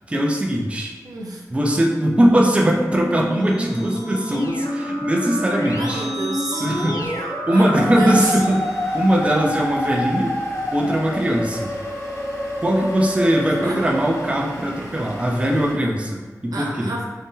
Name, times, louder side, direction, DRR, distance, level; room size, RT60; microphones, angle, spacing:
voice 1, 0.1-0.9 1.5-6.1 6.6-7.0 7.5-8.6 8.9-10.4 10.7-11.8 12.6-17.0, right 1 dB, 20° right, -1 dB, 0.5 m, -20 dB
voice 2, 1.0-1.4 5.8-6.7 7.5-8.4 13.6-13.8 16.5-17.1, right 2 dB, 90° right, -2 dB, 0.5 m, -29 dB
Musical instrument, 1.8-15.2, left 1 dB, 20° left, 0.7 m, -28 dB
Keyboard (musical), 3.1-9.7, right 1 dB, 80° left, 0.4 m, -34 dB
Vehicle / Engine, 7.7-15.7, equal, 55° left, 0.9 m, -39 dB
2.7 x 2.1 x 3.6 m, 1.4 s
wide cardioid pair, 70°, 6 cm